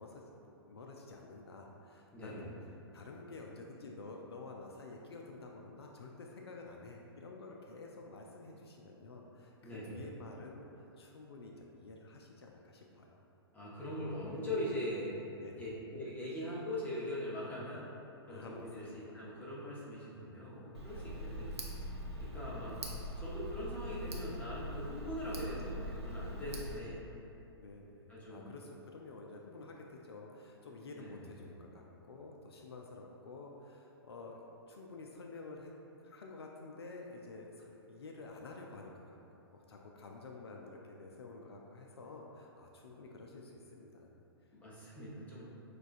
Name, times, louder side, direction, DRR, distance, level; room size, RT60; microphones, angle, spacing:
voice 1, 0.0-2.5 2.9-13.2 15.4-15.8 18.3-19.3 20.8-21.4 26.6-26.8 27.6-35.7 36.0-44.1, left 3 dB, 70° left, 0 dB, 0.4 m, -50 dB
voice 2, 2.1-2.5 9.6-10.0 13.5-15.2 15.6-17.8 18.3-21.5 22.2-22.8 23.2-27.1 28.1-28.5 30.9-31.2 44.5-45.5, left 1 dB, 10° left, -7 dB, 0.9 m, -41 dB
Tick, 20.7-26.8, equal, 85° right, 0.6 m, -42 dB
6.1 x 2.3 x 2.5 m, 3.0 s
figure-of-eight pair, 115°, 14 cm